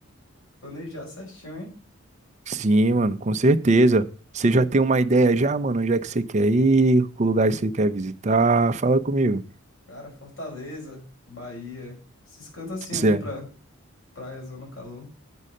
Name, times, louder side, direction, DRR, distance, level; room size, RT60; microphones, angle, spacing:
voice 1, 0.6-1.7 9.9-12.0 12.3-13.5 14.1-15.1, left 2 dB, 70° left, 4.9 m, -37 dB
voice 2, 2.5-4.0 4.3-9.4 12.9-13.2, right 2 dB, 35° right, 0.5 m, -20 dB
7.4 x 5.4 x 6.5 m
head